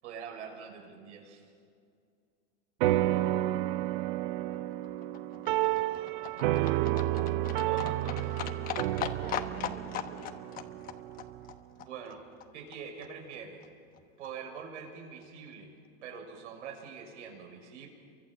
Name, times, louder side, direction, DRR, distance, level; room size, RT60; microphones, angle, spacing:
voice 1, 0.0-1.5 5.9-6.1 6.4-7.2 7.6-8.6 11.8-12.2 12.5-13.6 14.2-15.7 16.0-17.9, right 6 dB, 90° right, 2 dB, 6.7 m, -45 dB
sound 1, 2.8-11.5, right 15 dB, 50° right, 0.6 m, -31 dB
voice 2, 3.6-4.5 9.0-10.4, right 4 dB, 30° right, 2 dB, 3.3 m, -50 dB
Livestock farm animals working animals, 4.5-12.8 13.0-13.1 13.3-13.4 13.6-13.7 13.9-14.0 14.2-14.3 14.6-14.7 14.9-15.0 15.2-15.3, left 10 dB, 25° left, 1.0 m, -40 dB
29.5 x 24.0 x 7.5 m, 2.3 s
supercardioid pair, 165°, 34 cm